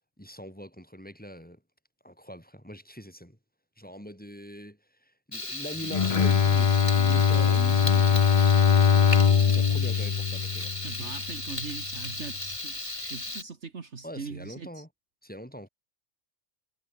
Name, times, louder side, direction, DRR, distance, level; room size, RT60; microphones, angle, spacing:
voice 1, 0.2-1.6 2.0-3.4 3.8-8.3 8.7-10.7 14.0-14.9 15.2-15.7, equal, 5° left, 4.5 m, -42 dB
Frying (food), 5.3-13.4, left 2 dB, 25° left, 2.6 m, -35 dB
Bowed string instrument, 5.8-11.2, left 6 dB, 40° left, 0.5 m, -22 dB
voice 2, 10.8-14.8, right 5 dB, 60° right, 1.9 m, -41 dB
omnidirectional pair, 1.3 m